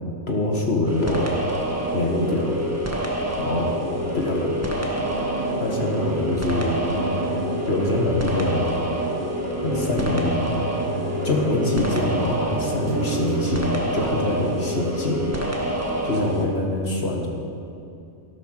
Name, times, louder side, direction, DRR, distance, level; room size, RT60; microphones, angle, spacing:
voice 1, 0.3-1.3 1.9-2.5 3.4-3.8 4.1-4.5 5.6-6.8 7.6-8.7 9.6-10.4 11.2-15.5 16.0-17.3, left 2 dB, 55° left, 0 dB, 1.7 m, -24 dB
sound 1, 0.8-16.5, equal, 10° right, 1.5 m, -27 dB
sound 2, 5.0-12.6 12.9-13.7, right 3 dB, 50° right, 0.9 m, -32 dB
12.5 x 12.0 x 6.4 m, 2.6 s
omnidirectional pair, 1.3 m